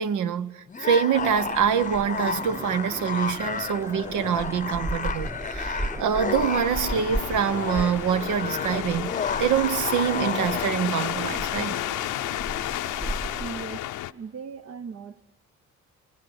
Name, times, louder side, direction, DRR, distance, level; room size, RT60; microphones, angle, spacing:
voice 1, 0.0-9.1 9.4-11.8, right 8 dB, 75° right, 0.9 m, -25 dB
sound 1, 0.7-10.9, left 5 dB, 25° left, 0.8 m, -32 dB
sound 2, 1.1-13.7, right 1 dB, 10° right, 0.8 m, -36 dB
sound 3, 6.5-14.1, left 14 dB, 85° left, 0.8 m, -32 dB
voice 2, 13.4-15.3, right 5 dB, 50° right, 0.8 m, -39 dB
28.5 x 21.0 x 7.9 m
cardioid pair, 90°, 30 cm